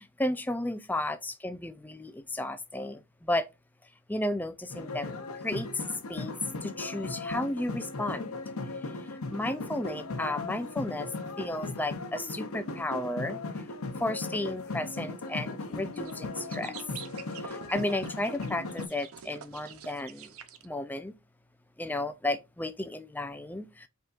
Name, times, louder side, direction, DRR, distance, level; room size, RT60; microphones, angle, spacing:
voice 1, 0.0-3.5 4.1-5.2 5.4-5.8 6.1-6.3 6.6-8.4 9.0-11.1 11.4-13.6 14.0-16.8 17.3-20.3 20.6-21.1 21.8-23.9, left 1 dB, 10° left, 0.4 m, -33 dB
sound 1, 4.7-18.9, left 3 dB, 80° left, 0.8 m, -37 dB
sound 2, 15.9-16.1 16.5-20.7, right 8 dB, 80° right, 0.7 m, -47 dB
5.3 x 3.7 x 2.5 m
head